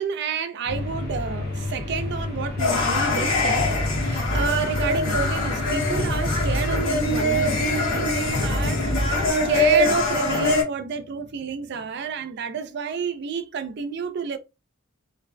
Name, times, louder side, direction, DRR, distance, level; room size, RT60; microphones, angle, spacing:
voice 1, 0.0-14.4, right 6 dB, 55° right, 0.4 m, -30 dB
sound 1, 0.7-9.3, left 2 dB, 50° left, 0.8 m, -30 dB
sound 2, 2.6-10.6, left 1 dB, 75° left, 1.0 m, -23 dB
2.4 x 2.1 x 2.5 m
head